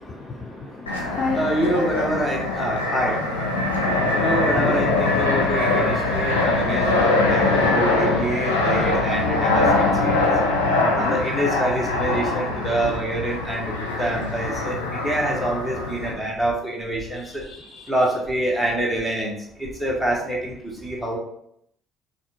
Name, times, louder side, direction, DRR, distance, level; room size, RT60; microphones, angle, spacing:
voice 1, 0.0-1.4 4.6-4.8 11.0-11.2 17.2-17.9, left 3 dB, 30° left, -1 dB, 0.6 m, -32 dB
Fixed-wing aircraft airplane, 0.9-16.1, left 2 dB, 85° left, 0.6 m, -22 dB
voice 2, 1.3-3.6 4.1-10.3 10.9-17.4 17.9-21.2, right 1 dB, ahead, -3 dB, 1.3 m, -26 dB
5.6 x 2.7 x 2.4 m, 0.72 s
figure-of-eight pair, 50°, 0 cm